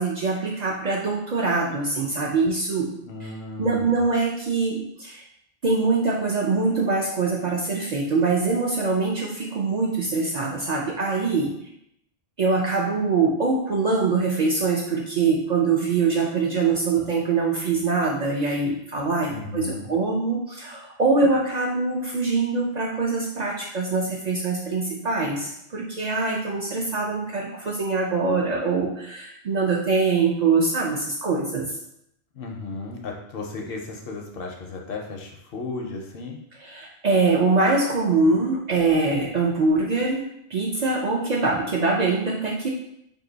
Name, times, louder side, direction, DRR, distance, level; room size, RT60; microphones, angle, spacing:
voice 1, 0.0-2.9 3.6-5.2 5.6-11.5 12.4-31.7 36.6-42.7, right 3 dB, 55° right, -3 dB, 0.5 m, -23 dB
voice 2, 3.0-4.0 19.3-19.9 32.3-36.4, left 3 dB, 65° left, 1 dB, 0.7 m, -34 dB
2.7 x 2.6 x 3.8 m, 0.77 s
omnidirectional pair, 1.1 m